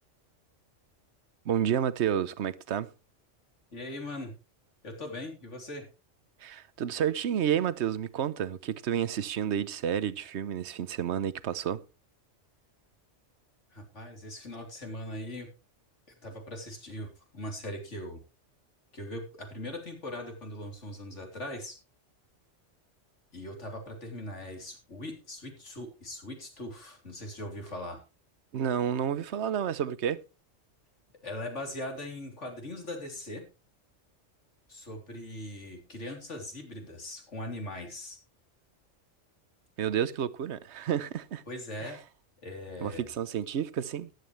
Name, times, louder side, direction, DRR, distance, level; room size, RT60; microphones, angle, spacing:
voice 1, 1.4-2.9 6.4-11.8 28.5-30.2 39.8-41.4 41.8-41.9 42.8-44.1, right 9 dB, 65° right, 1.0 m, -30 dB
voice 2, 3.7-4.4 4.8-5.9 13.7-15.5 16.2-18.2 18.9-21.8 23.3-28.0 31.2-33.4 34.7-38.2 41.5-42.0 42.4-43.1, left 1 dB, 70° left, 3.7 m, -40 dB
14.5 x 11.0 x 3.2 m
omnidirectional pair, 1.3 m